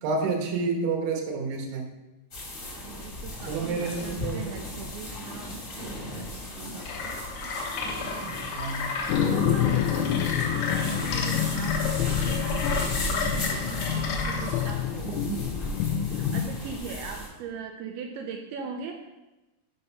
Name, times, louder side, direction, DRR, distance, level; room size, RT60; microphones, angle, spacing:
voice 1, 0.0-1.9 3.5-4.5 8.5-8.9 15.0-15.4, right 4 dB, 65° right, 0 dB, 2.2 m, -29 dB
sound 1, 2.3-17.3, left 1 dB, 35° left, 1.2 m, -36 dB
voice 2, 2.7-7.2 8.0-8.5 9.1-10.3 10.5-15.1 16.0-19.1, right 6 dB, 85° right, 3 dB, 2.3 m, -40 dB
sound 2, 6.8-14.7, left 4 dB, 70° left, 2.2 m, -33 dB
sound 3, 9.1-16.4, left 9 dB, 85° left, 2.8 m, -28 dB
6.8 x 5.2 x 5.5 m, 1.0 s
omnidirectional pair, 5.1 m